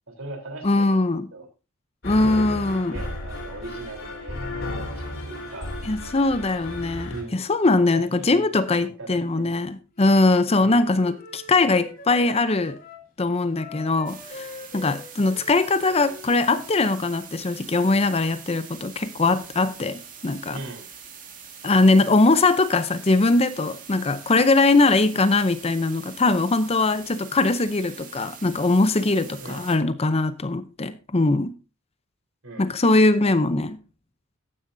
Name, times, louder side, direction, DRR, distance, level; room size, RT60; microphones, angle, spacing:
voice 1, 0.1-1.0 1.3-1.5 2.2-5.7 7.1-7.5 7.9-8.5 8.8-9.5 10.6-10.9 20.5-20.9 29.4-29.7 32.4-32.8, right 2 dB, 60° right, 3.7 m, -39 dB
voice 2, 0.6-1.3 2.0-3.0 5.8-12.8 13.2-20.6 21.6-31.5 32.6-33.8, left 2 dB, 30° left, 0.6 m, -21 dB
sound 1, 2.0-7.2, left 1 dB, 60° left, 3.9 m, -34 dB
Wind instrument woodwind instrument, 10.4-13.0 13.5-16.8, left 2 dB, 45° left, 3.6 m, -43 dB
sound 2, 14.1-29.8, right 7 dB, 40° right, 2.2 m, -44 dB
14.0 x 10.0 x 2.7 m
head